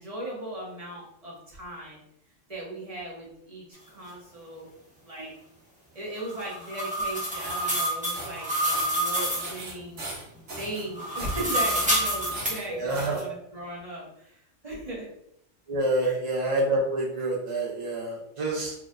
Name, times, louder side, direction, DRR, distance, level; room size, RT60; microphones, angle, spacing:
voice 1, 0.0-2.0 2.5-4.7 5.0-5.3 5.9-10.1 10.5-15.1 16.0-16.2, right 1 dB, 30° right, -5 dB, 1.2 m, -37 dB
sound 1, 6.2-9.5 10.9-12.5, right 1 dB, 5° right, 0.7 m, -28 dB
sound 2, 7.2-7.7 8.1-8.4 8.7-9.0 9.4-10.8 11.2-11.5 11.8-13.2, right 2 dB, 65° right, 1.2 m, -39 dB
voice 2, 12.7-13.3 15.7-18.7, right 1 dB, 45° right, -3 dB, 0.4 m, -27 dB
4.0 x 2.9 x 2.5 m, 0.74 s
omnidirectional pair, 1.3 m